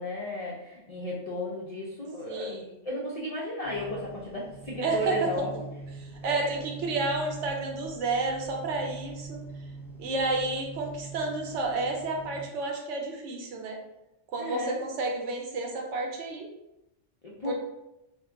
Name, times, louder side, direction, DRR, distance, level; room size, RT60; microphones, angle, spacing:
voice 1, 0.0-2.6 2.8-5.5 6.2-6.7 14.4-14.8 17.2-17.5, left 1 dB, 70° left, -4 dB, 0.3 m, -34 dB
voice 2, 2.2-2.7 4.8-5.3 6.0-9.4 10.0-13.8 14.3-16.5 17.4-17.5, right 3 dB, 80° right, 2 dB, 0.9 m, -31 dB
sound 1, 3.6-12.5, right 3 dB, 45° right, 0.6 m, -43 dB
2.2 x 2.2 x 3.6 m, 0.91 s
omnidirectional pair, 1.2 m